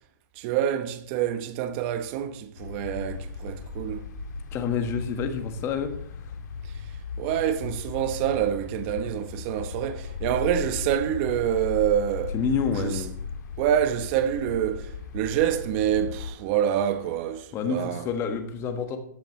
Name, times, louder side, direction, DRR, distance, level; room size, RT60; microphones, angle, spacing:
voice 1, 0.4-4.1 7.2-12.4 12.7-13.0 13.6-18.1, right 10 dB, 40° right, 1.0 m, -27 dB
sound 1, 2.6-16.3, left 5 dB, 65° left, 1.6 m, -36 dB
voice 2, 4.5-6.0 12.3-13.2 17.5-19.0, left 6 dB, 25° left, 1.5 m, -28 dB
14.5 x 10.5 x 3.2 m
hypercardioid pair, 140°, 10 cm